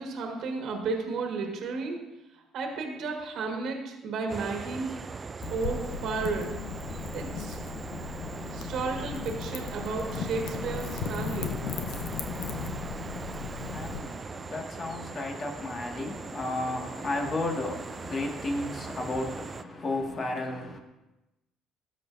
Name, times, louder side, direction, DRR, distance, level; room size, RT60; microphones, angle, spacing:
voice 1, 0.0-2.1 2.3-4.9 5.5-6.5 7.1-7.6 8.5-11.5, right 4 dB, 65° right, 2 dB, 1.6 m, -33 dB
sound 1, 4.3-19.6, right 4 dB, 30° right, 0.3 m, -40 dB
Wind / Fire, 5.4-14.0, left 6 dB, 75° left, 0.7 m, -36 dB
voice 2, 12.6-20.8, left 2 dB, 40° left, 1 dB, 1.8 m, -34 dB
13.0 x 6.5 x 2.6 m, 1.0 s
supercardioid pair, 75°, 0 cm